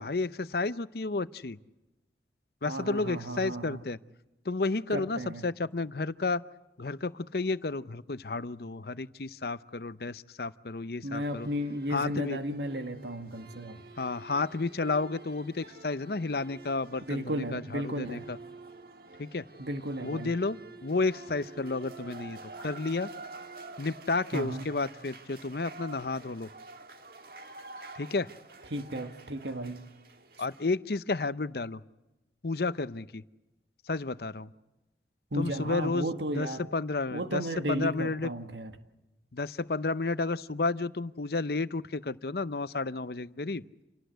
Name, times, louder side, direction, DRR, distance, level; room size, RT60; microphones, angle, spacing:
voice 1, 0.0-1.6 2.6-4.0 4.5-6.4 6.8-11.5 11.9-12.4 14.0-18.4 19.2-19.4 20.0-23.1 23.8-26.5 28.0-28.3 30.4-31.8 32.4-33.2 33.9-34.5 35.4-36.1 36.3-36.5 36.7-37.4 37.7-38.3 39.3-43.6, left 3 dB, 60° left, 15 dB, 0.7 m, -31 dB
voice 2, 2.7-3.8 4.9-5.5 11.0-13.8 17.0-18.3 19.6-20.3 24.3-24.7 28.7-29.8 35.3-36.6 37.1-38.7, equal, 85° right, 7 dB, 1.9 m, -34 dB
sound 1, 11.2-30.6, right 3 dB, 55° right, 1.7 m, -48 dB
28.0 x 18.0 x 8.0 m, 1.0 s
head